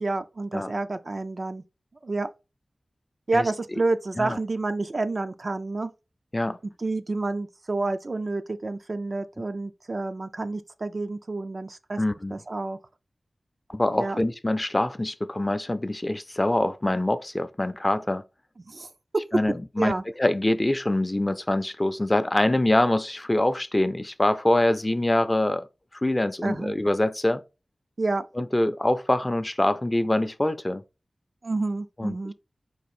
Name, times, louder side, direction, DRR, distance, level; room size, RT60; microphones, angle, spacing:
voice 1, 0.0-1.6 2.0-2.3 3.3-5.9 6.8-12.0 12.3-12.8 14.0-14.2 18.6-18.9 19.8-20.0 26.4-26.7 28.0-28.3 31.4-32.3, right 3 dB, 55° right, 0.5 m, -29 dB
voice 2, 12.0-12.3 13.7-18.2 19.3-19.9 20.2-25.7 25.9-27.4 28.4-30.8 32.0-32.3, left 1 dB, 25° left, 0.5 m, -24 dB
4.8 x 2.5 x 4.3 m
cardioid pair, 50°, 0 cm